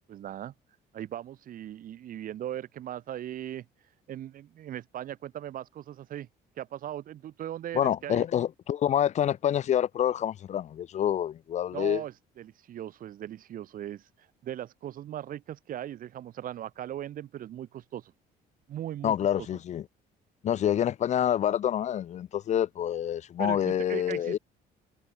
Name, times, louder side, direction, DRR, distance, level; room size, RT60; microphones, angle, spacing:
voice 1, 0.1-0.5 0.9-3.7 4.1-6.3 6.6-8.2 11.7-18.1 18.7-19.1 23.4-24.4, right 11 dB, 55° right, 1.0 m, -38 dB
voice 2, 7.7-12.0 19.0-19.8 20.4-24.4, left 10 dB, 45° left, 0.5 m, -27 dB
cardioid pair, 110°, 17 cm